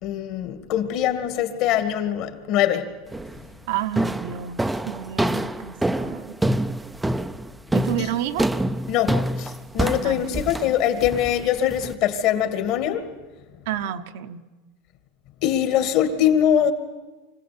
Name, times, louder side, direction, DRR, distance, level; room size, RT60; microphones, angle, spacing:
voice 1, 0.0-2.9 8.0-8.1 8.9-13.1 15.4-16.7, left 10 dB, 50° left, 10 dB, 2.2 m, -22 dB
sound 1, 3.1-3.5 4.0-11.9, right 1 dB, 5° right, 0.6 m, -26 dB
voice 2, 3.7-6.4 7.7-8.5 10.0-10.4 13.7-14.4, right 10 dB, 70° right, 9 dB, 1.2 m, -30 dB
24.5 x 16.0 x 8.7 m, 1.2 s
supercardioid pair, 145°, 0 cm